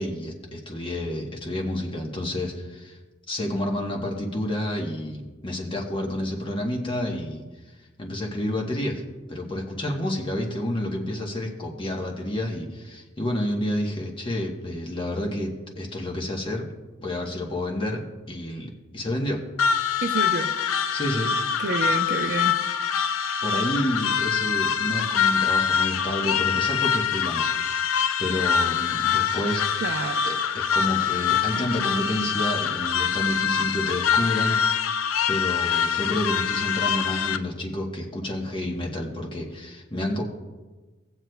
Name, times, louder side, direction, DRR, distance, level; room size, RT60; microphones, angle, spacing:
voice 1, 0.0-3.0 3.3-9.0 9.3-16.6 17.0-18.0 18.3-19.4 20.9-21.3 23.4-27.9 28.2-29.6 30.2-34.6 34.9-40.2, left 1 dB, 25° left, 1.1 m, -29 dB
sound 1, 19.6-37.4, left 7 dB, 90° left, 0.4 m, -24 dB
voice 2, 20.0-20.6 21.6-22.6 29.8-30.3, right 3 dB, 55° right, 0.6 m, -28 dB
17.5 x 7.7 x 2.3 m
head